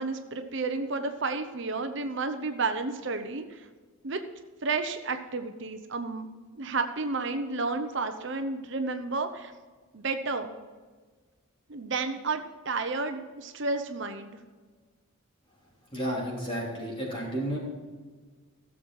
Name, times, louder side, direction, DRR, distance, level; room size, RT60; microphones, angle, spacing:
voice 1, 0.0-3.7 4.0-4.2 4.6-6.3 6.6-9.5 9.9-10.5 11.7-14.4, right 3 dB, 55° right, 7 dB, 0.8 m, -31 dB
voice 2, 15.9-17.6, equal, 25° left, -4 dB, 3.4 m, -32 dB
16.0 x 7.3 x 4.7 m, 1.4 s
head